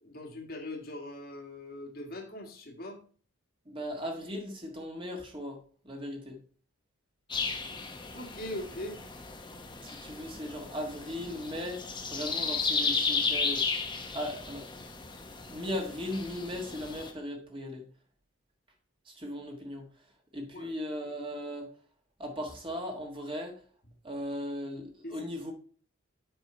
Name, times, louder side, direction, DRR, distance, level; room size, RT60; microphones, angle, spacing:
voice 1, 0.0-3.0 8.1-9.0 20.4-20.7 25.0-25.2, left 1 dB, 45° left, 2 dB, 1.5 m, -41 dB
voice 2, 3.7-5.6 5.8-6.4 9.8-11.8 12.1-13.6 14.1-14.7 15.5-17.8 19.1-19.9 20.3-21.7 22.2-23.6 24.0-25.5, left 1 dB, 25° right, 2 dB, 1.5 m, -37 dB
sound 1, 7.3-17.1, left 4 dB, 20° left, 0.9 m, -34 dB
8.0 x 5.5 x 4.2 m, 0.42 s
head